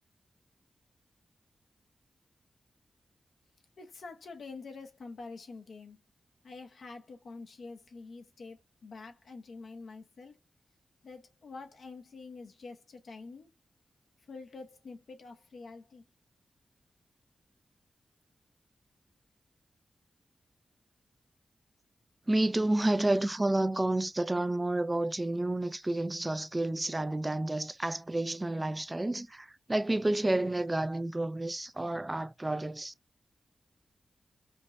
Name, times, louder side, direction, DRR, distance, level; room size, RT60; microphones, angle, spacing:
voice 1, 3.8-6.0 6.4-10.4 11.0-13.5 14.3-16.1, left 3 dB, 75° left, 0.8 m, -47 dB
voice 2, 22.3-32.9, right 1 dB, 25° right, 0.3 m, -30 dB
5.2 x 2.1 x 2.5 m
cardioid pair, 50°, 0 cm